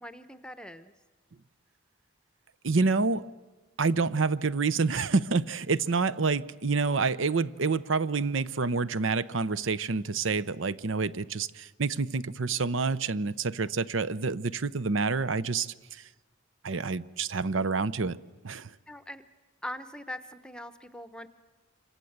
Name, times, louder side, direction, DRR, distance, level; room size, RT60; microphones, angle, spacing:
voice 1, 0.0-0.9 18.9-19.2 19.6-21.3, left 1 dB, 5° left, 0.8 m, -41 dB
voice 2, 2.6-3.3 3.8-16.0 16.6-18.2 18.4-18.7, right 4 dB, 70° right, 0.8 m, -28 dB
27.5 x 25.0 x 8.0 m
head